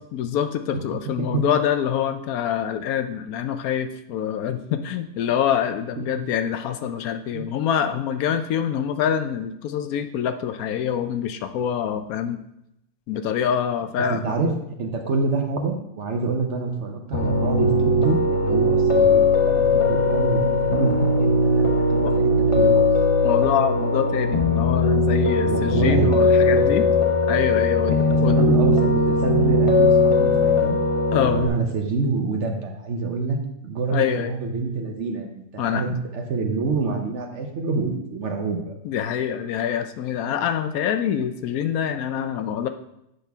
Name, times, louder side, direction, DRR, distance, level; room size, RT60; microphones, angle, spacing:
voice 1, 0.1-12.4 13.1-14.4 22.0-22.1 23.2-26.9 27.3-28.4 31.1-31.4 33.9-34.3 35.6-35.8 38.8-42.7, left 9 dB, 75° left, 9 dB, 1.0 m, -25 dB
voice 2, 14.1-14.5 14.8-21.6 21.9-22.9 25.4-26.2 26.4-26.7 28.0-30.8 31.2-38.7, right 4 dB, 55° right, 3 dB, 1.1 m, -27 dB
Piano, 17.1-31.5, left 2 dB, 25° left, 0.8 m, -19 dB
8.0 x 6.1 x 3.5 m, 0.80 s
omnidirectional pair, 1.6 m